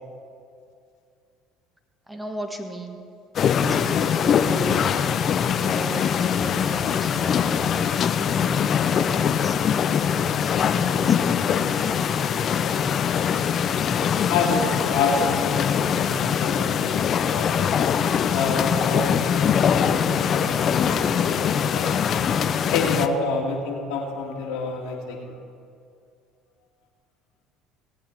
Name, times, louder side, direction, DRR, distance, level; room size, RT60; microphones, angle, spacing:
voice 1, 2.1-3.0 3.6-5.0 5.6-12.1, right 1 dB, 10° right, 4 dB, 1.5 m, -36 dB
sound 1, 3.3-23.1, left 8 dB, 50° left, 0.6 m, -22 dB
voice 2, 14.3-17.8 18.3-21.9 22.7-25.4, left 4 dB, 75° left, 0 dB, 2.2 m, -28 dB
17.5 x 8.7 x 4.6 m, 2.4 s
hypercardioid pair, 70°, 0 cm